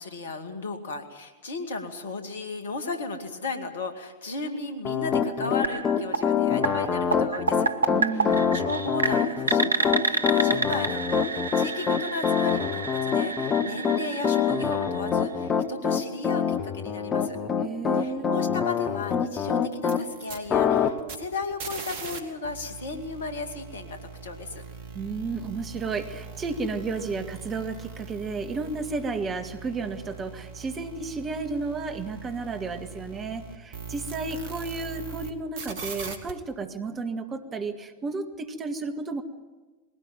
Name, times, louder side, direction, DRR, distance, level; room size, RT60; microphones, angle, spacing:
voice 1, 0.0-7.7 8.1-17.4 17.9-24.6, left 3 dB, 65° left, 7 dB, 2.3 m, -35 dB
Piano, 4.8-20.0 20.5-20.9, left 7 dB, 25° left, 1.3 m, -25 dB
sound 1, 5.6-15.4, right 4 dB, 75° right, 0.8 m, -30 dB
voice 2, 7.9-8.5 17.6-18.3 24.9-39.2, right 4 dB, 25° right, 7 dB, 1.9 m, -32 dB
sound 2, 19.7-22.2 22.4-35.3 35.6-36.3, right 5 dB, 55° right, 2.4 m, -41 dB
21.0 x 17.5 x 9.2 m, 1.2 s
figure-of-eight pair, 90°, 0 cm